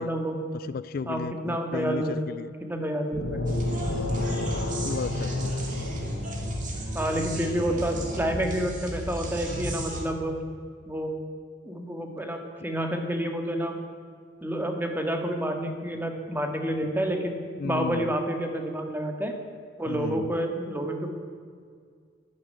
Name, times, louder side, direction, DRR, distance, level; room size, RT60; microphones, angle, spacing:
voice 1, 0.0-0.4 1.1-2.2 2.6-3.6 6.9-10.4 10.9-11.1 11.6-13.8 14.4-17.3 17.6-19.3 19.8-21.1, right 1 dB, 10° right, 4 dB, 1.8 m, -29 dB
voice 2, 0.5-2.5 4.1-5.5 17.6-18.1 19.9-20.3, left 5 dB, 50° left, 16 dB, 0.3 m, -34 dB
sound 1, 3.1-6.8, left 2 dB, 80° left, 1.4 m, -31 dB
sound 2, 3.5-10.0, equal, 40° right, 2.7 m, -33 dB
11.5 x 11.5 x 9.3 m, 2.1 s
head